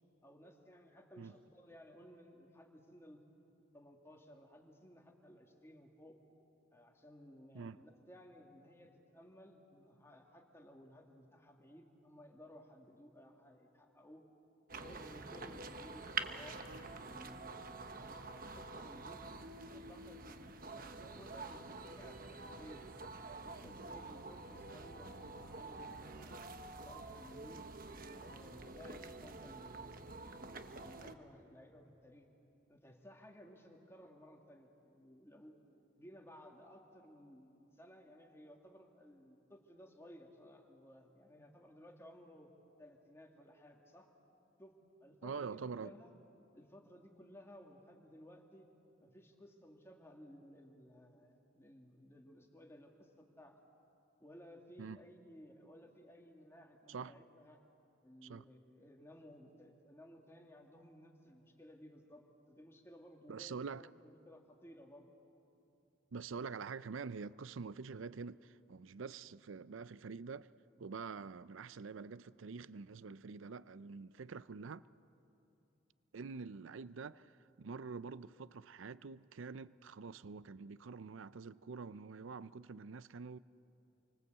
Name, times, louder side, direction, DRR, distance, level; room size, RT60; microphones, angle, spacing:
voice 1, 0.2-3.2 3.7-6.2 6.7-14.2 14.7-19.2 19.7-22.9 23.4-26.6 26.8-27.6 28.0-32.3 32.7-35.6 36.0-42.5 42.8-44.1 44.6-44.7 45.0-46.1 46.5-48.7 49.0-53.6 54.2-57.6 58.0-65.1, equal, 15° left, 2.4 m, -58 dB
sound 1, 14.7-31.1, right 3 dB, 45° right, 1.2 m, -47 dB
voice 2, 45.2-45.9 54.8-55.0 56.9-57.2 58.2-58.4 63.3-63.8 66.1-70.5 70.8-74.9 76.1-83.4, right 5 dB, 85° right, 0.5 m, -46 dB
28.0 x 24.5 x 8.1 m
head